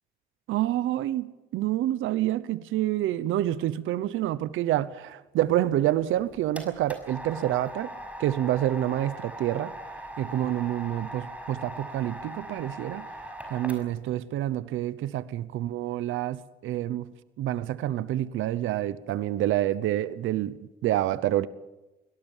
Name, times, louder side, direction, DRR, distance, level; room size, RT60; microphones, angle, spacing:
voice 1, 0.5-7.9 8.2-9.7 10.2-13.1 13.5-17.1 17.4-21.5, right 13 dB, 85° right, 0.9 m, -28 dB
sound 1, 6.0-14.1, right 1 dB, 5° right, 5.9 m, -40 dB
24.5 x 18.0 x 7.3 m
cardioid pair, 90°, 20 cm